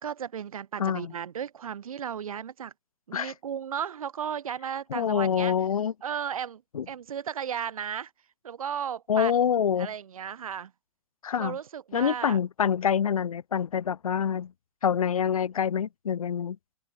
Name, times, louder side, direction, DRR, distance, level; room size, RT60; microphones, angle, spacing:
voice 1, 0.0-2.7 3.1-5.5 6.0-8.1 8.4-9.4 9.8-10.7 11.4-12.4, right 8 dB, 80° right, 2.1 m, -35 dB
voice 2, 0.8-1.1 3.1-3.3 4.9-5.9 6.7-6.8 9.1-9.9 11.2-11.6 11.9-14.5 14.8-16.6, left 8 dB, 90° left, 1.4 m, -26 dB
open air
hypercardioid pair, 155°, 18 cm